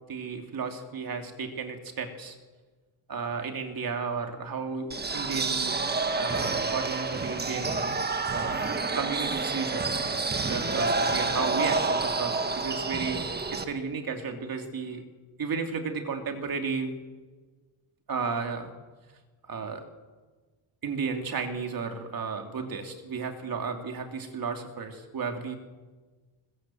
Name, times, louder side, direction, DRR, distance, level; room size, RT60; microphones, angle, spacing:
voice 1, 0.1-2.4 3.1-5.8 6.1-7.9 8.3-9.8 10.5-15.0 15.4-17.0 18.1-18.7 19.4-19.8 20.8-25.6, right 5 dB, 45° right, 4 dB, 3.0 m, -33 dB
sound 1, 4.9-13.6, right 3 dB, 20° right, 1.4 m, -28 dB
22.5 x 21.0 x 7.8 m, 1.3 s
cardioid pair, 155°, 50 cm